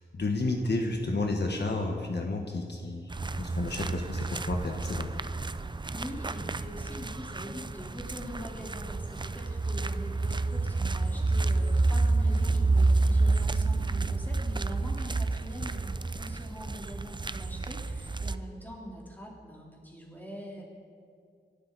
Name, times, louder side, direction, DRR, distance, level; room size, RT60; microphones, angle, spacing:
voice 1, 0.0-5.1, left 2 dB, 70° left, 2 dB, 1.5 m, -31 dB
sound 1, 3.1-18.4, right 3 dB, 25° right, 0.5 m, -29 dB
voice 2, 5.9-20.6, equal, 10° left, -3 dB, 3.8 m, -43 dB
26.0 x 12.0 x 4.2 m, 2.3 s
wide cardioid pair, 80°, 18 cm